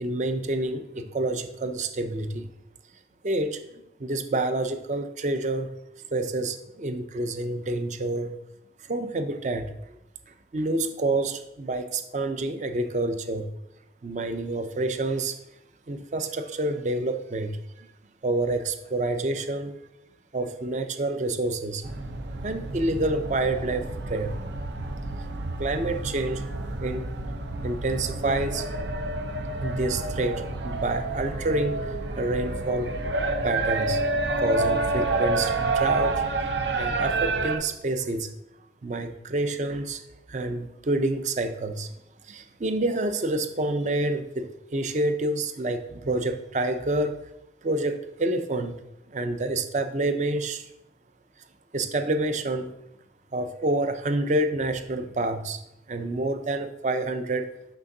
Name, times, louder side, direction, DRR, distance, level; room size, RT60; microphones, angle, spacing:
voice 1, 0.0-2.5 3.2-3.6 4.0-5.8 6.1-8.4 8.9-9.7 10.5-13.5 14.0-15.4 15.9-17.9 18.2-19.7 20.3-21.8 22.4-24.4 25.6-26.5 26.8-27.1 27.6-28.6 29.6-31.9 32.2-32.9 33.4-34.0 34.4-36.2 36.8-38.3 38.8-40.0 40.3-41.9 42.3-47.2 47.6-48.8 49.1-50.6 51.7-52.7 53.3-55.6 55.9-57.5, right 2 dB, 40° right, 8 dB, 0.5 m, -28 dB
sound 1, 21.8-37.6, right 2 dB, 85° right, 0.6 m, -29 dB
6.5 x 6.1 x 2.7 m, 0.84 s
head